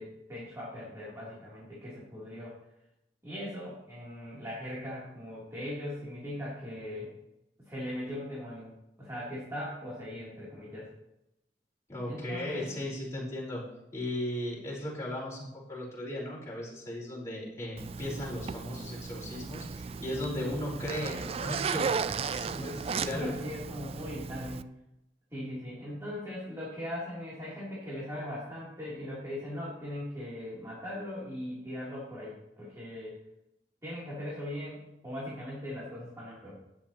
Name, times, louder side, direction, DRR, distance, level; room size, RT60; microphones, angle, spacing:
voice 1, 0.0-2.6 3.2-7.1 7.6-8.7 9.0-10.9 12.1-12.7 22.4-24.6 25.3-33.2 33.8-36.5, left 1 dB, 15° right, -8 dB, 3.2 m, -39 dB
voice 2, 11.9-13.6 13.9-23.3, left 1 dB, 15° left, -6 dB, 4.4 m, -36 dB
Zipper (clothing), 17.8-24.6, right 6 dB, 35° right, 0.3 m, -35 dB
13.0 x 10.0 x 3.0 m, 0.87 s
head